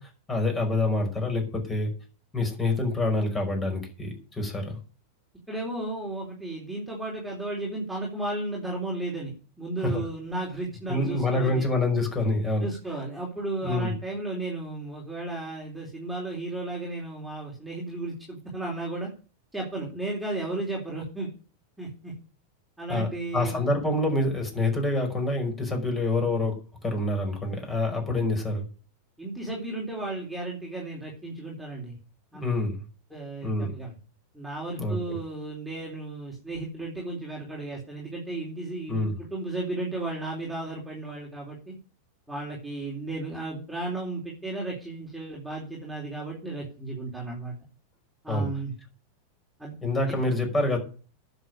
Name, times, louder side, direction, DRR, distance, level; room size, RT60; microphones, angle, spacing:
voice 1, 0.0-1.9 2.3-4.8 9.8-10.0 10.9-12.7 13.6-13.9 22.9-23.1 23.3-26.6 26.8-28.7 32.4-32.8 33.4-33.7 34.8-35.2 38.9-39.1 48.3-48.5 49.8-50.8, left 2 dB, 15° left, 3 dB, 5.5 m, -26 dB
voice 2, 5.5-11.7 12.6-19.1 19.5-21.3 21.8-22.1 22.8-23.7 29.2-32.0 32.3-32.5 33.1-34.0 34.3-41.8 42.3-47.5 48.2-48.7 49.6-49.7 50.1-50.2, right 2 dB, ahead, -4 dB, 4.0 m, -34 dB
10.5 x 7.2 x 9.1 m, 0.38 s
figure-of-eight pair, 90°, 0 cm